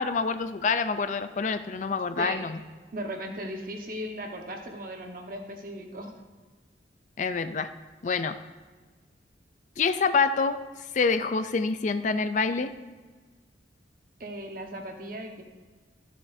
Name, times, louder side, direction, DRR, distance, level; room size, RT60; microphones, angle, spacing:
voice 1, 0.0-2.6 7.2-7.7 8.0-8.4 9.8-10.6 10.9-12.7, left 4 dB, 45° left, 11 dB, 0.4 m, -26 dB
voice 2, 2.9-6.1 14.2-15.4, equal, 50° right, 3 dB, 1.1 m, -37 dB
13.0 x 7.4 x 2.6 m, 1.4 s
head